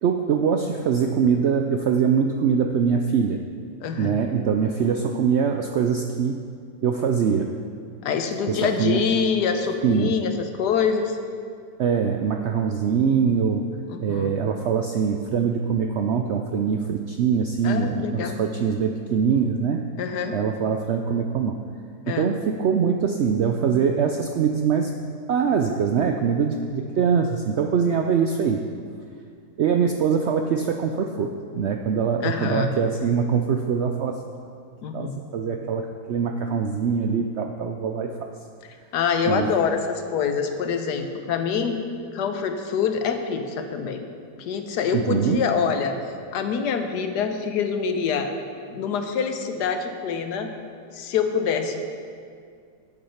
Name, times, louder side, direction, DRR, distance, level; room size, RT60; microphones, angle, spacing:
voice 1, 0.0-3.4 4.0-6.4 6.8-7.5 8.5-9.0 9.8-10.1 11.8-13.7 14.0-19.9 20.3-21.6 22.1-24.9 25.3-28.6 29.6-34.2 34.9-38.3 39.3-39.5 44.9-45.4, right 6 dB, 75° right, 5 dB, 0.6 m, -23 dB
voice 2, 3.8-4.2 8.0-11.2 13.9-14.4 17.6-18.4 20.0-20.4 22.1-22.3 32.2-32.7 34.8-35.2 38.9-41.8 42.1-44.0 44.4-45.9 46.3-48.3 48.7-50.5 50.9-51.7, left 6 dB, 90° left, 6 dB, 1.4 m, -25 dB
9.0 x 8.6 x 5.7 m, 2.2 s
omnidirectional pair, 1.7 m